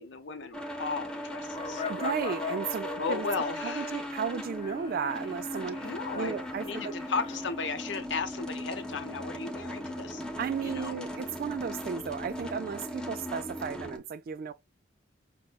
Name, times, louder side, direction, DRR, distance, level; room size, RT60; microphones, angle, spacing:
voice 1, 0.0-2.0 3.0-4.1 5.8-6.3 6.6-10.2 10.6-11.0, left 4 dB, 80° left, 0.8 m, -35 dB
sound 1, 0.5-14.0, equal, 5° left, 0.6 m, -38 dB
sound 2, 1.5-7.6, left 5 dB, 30° left, 1.0 m, -41 dB
voice 2, 1.9-3.3 3.6-5.9 6.1-7.0 10.4-14.5, right 6 dB, 50° right, 0.3 m, -34 dB
5.9 x 2.1 x 2.3 m
head